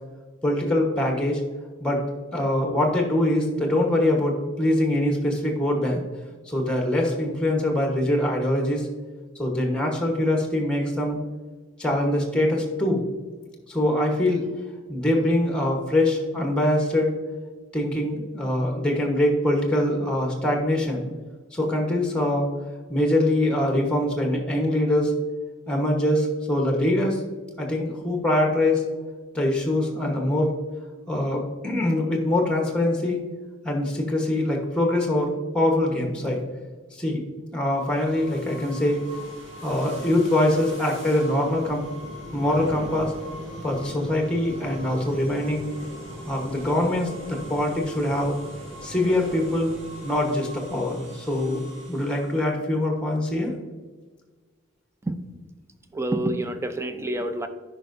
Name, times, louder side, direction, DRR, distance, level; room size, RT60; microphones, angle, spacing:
voice 1, 0.4-1.4 1.8-2.0 2.3-6.0 6.5-8.9 9.4-11.2 11.8-13.1 13.7-14.4 14.9-17.1 17.7-21.1 21.5-22.5 22.9-25.2 25.7-27.2 27.6-28.8 29.3-30.5 31.1-33.2 33.6-36.4 36.9-37.2 37.5-39.0 39.6-41.8 42.3-43.1 43.6-45.7 46.3-48.4 48.8-49.7 50.0-51.6 51.9-53.5, left 1 dB, 5° left, 2 dB, 1.0 m, -23 dB
sound 1, 37.7-52.5, equal, 65° right, 2.2 m, -40 dB
voice 2, 55.9-57.5, right 1 dB, 15° right, 8 dB, 0.4 m, -27 dB
9.9 x 5.3 x 2.6 m, 1.4 s
head